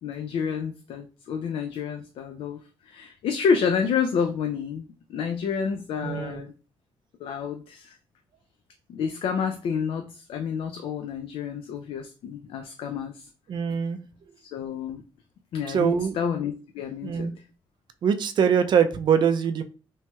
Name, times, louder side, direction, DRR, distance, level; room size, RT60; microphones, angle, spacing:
voice 1, 0.0-2.6 2.8-6.5 7.2-8.0 8.9-13.3 14.4-15.0 15.5-17.3, left 6 dB, 75° left, 5 dB, 0.3 m, -29 dB
voice 2, 6.0-6.4 13.5-14.0 15.7-16.2 17.0-17.3 18.0-19.6, right 7 dB, 55° right, 9 dB, 0.3 m, -23 dB
3.1 x 2.8 x 2.2 m, 0.35 s
cardioid pair, 105°, 9 cm